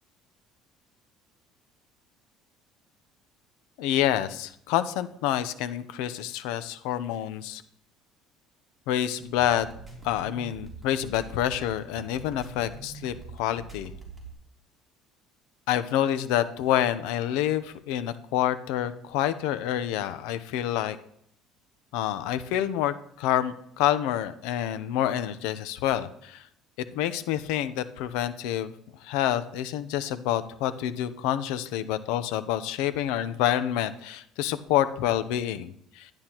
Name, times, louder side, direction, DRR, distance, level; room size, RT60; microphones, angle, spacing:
voice 1, 3.8-7.6 8.9-9.7 10.0-13.9 15.7-21.0 21.9-26.5 26.9-28.7 29.0-36.1, left 11 dB, 85° left, 11 dB, 0.7 m, -28 dB
sound 1, 9.2-14.3, right 3 dB, 5° right, 3.2 m, -44 dB
11.5 x 10.5 x 3.0 m, 0.69 s
cardioid pair, 130°, 0 cm